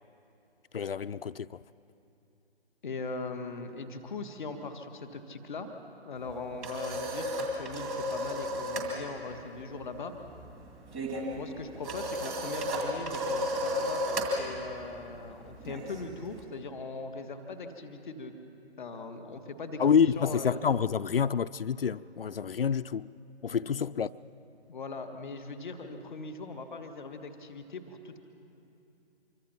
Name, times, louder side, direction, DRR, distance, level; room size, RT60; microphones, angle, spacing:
voice 1, 0.7-1.5 19.8-23.1 23.4-24.1, left 7 dB, 60° left, 0.5 m, -27 dB
voice 2, 2.8-5.7 6.0-10.1 11.4-18.3 18.8-19.8 20.1-20.6 23.7-23.8 24.7-28.2, left 3 dB, ahead, 0.4 m, -40 dB
sound 1, 6.2-8.9 9.2-9.5 9.8-16.4, equal, 15° right, 2.2 m, -34 dB
25.0 x 23.5 x 5.8 m
figure-of-eight pair, 140°, 33 cm